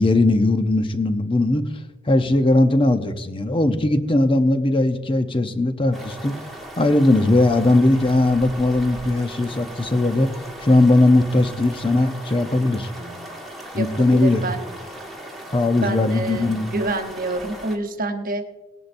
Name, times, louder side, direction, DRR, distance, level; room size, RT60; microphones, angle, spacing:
voice 1, 0.0-6.4 6.8-12.9 13.7-14.5 15.5-16.7, left 2 dB, 25° left, 9 dB, 0.7 m, -19 dB
sound 1, 5.9-17.8, right 1 dB, ahead, 1.5 m, -38 dB
voice 2, 13.7-14.7 15.7-18.4, right 2 dB, 40° right, 6 dB, 1.0 m, -28 dB
18.5 x 11.0 x 2.6 m, 1.2 s
head